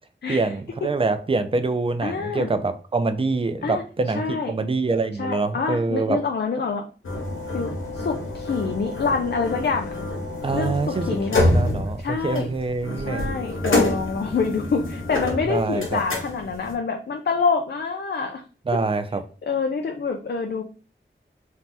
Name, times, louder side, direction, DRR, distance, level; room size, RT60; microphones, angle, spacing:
voice 1, 0.3-6.2 10.4-13.3 15.5-16.0 18.7-19.2, right 3 dB, 25° right, 0.3 m, -25 dB
voice 2, 2.0-2.5 3.6-3.8 4.1-4.5 5.2-6.8 7.5-9.9 10.5-11.5 12.0-12.5 13.1-18.4 19.4-20.6, left 5 dB, 60° left, 0.4 m, -26 dB
sound 1, 7.0-16.7, left 2 dB, 80° left, 0.8 m, -27 dB
2.7 x 2.1 x 3.2 m
wide cardioid pair, 45°, 20 cm